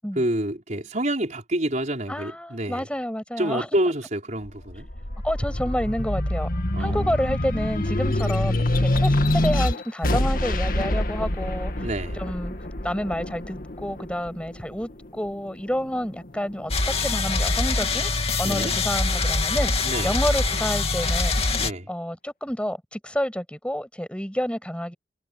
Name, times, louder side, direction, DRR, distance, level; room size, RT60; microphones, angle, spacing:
voice 1, 0.1-2.9 3.4-4.9 6.7-7.2 11.8-12.2 18.4-18.8 19.8-20.2 21.6-21.9, right 1 dB, 45° right, 4.9 m, -28 dB
voice 2, 2.1-3.7 5.2-6.5 6.8-11.9 12.1-12.5 12.8-18.1 18.4-19.7 20.0-21.4 21.9-25.0, equal, 5° left, 7.7 m, -29 dB
sound 1, 4.4-15.2 15.8-16.9, left 1 dB, 55° left, 2.0 m, -26 dB
sound 2, 16.7-21.7, left 3 dB, 35° left, 2.6 m, -24 dB
head